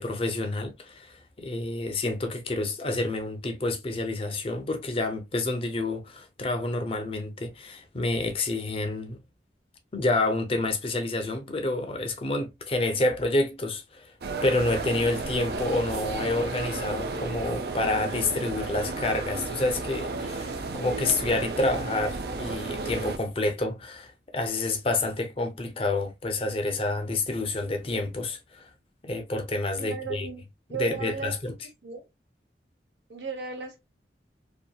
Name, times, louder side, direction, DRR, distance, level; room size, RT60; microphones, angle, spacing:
voice 1, 0.0-9.2 9.9-14.1 14.4-28.7 29.0-30.3 30.7-31.5, left 2 dB, 30° left, 0.5 m, -28 dB
sound 1, 14.2-23.2, right 3 dB, 60° right, 0.4 m, -33 dB
voice 2, 29.8-30.4 30.7-31.3 31.8-32.1 33.1-33.8, right 5 dB, 80° right, 0.8 m, -35 dB
2.7 x 2.6 x 2.2 m
head